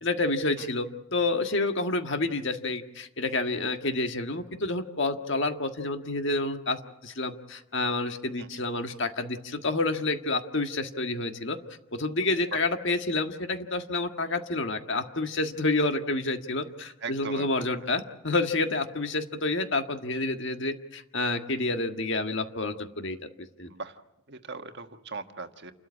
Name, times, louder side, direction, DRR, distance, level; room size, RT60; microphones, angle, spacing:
voice 1, 0.0-11.6 11.9-23.2 23.6-23.7, left 2 dB, 55° left, 7 dB, 1.7 m, -29 dB
voice 2, 17.0-17.9 23.6-24.0 24.3-25.7, right 4 dB, 50° right, 7 dB, 1.4 m, -39 dB
29.0 x 13.0 x 9.6 m, 0.91 s
head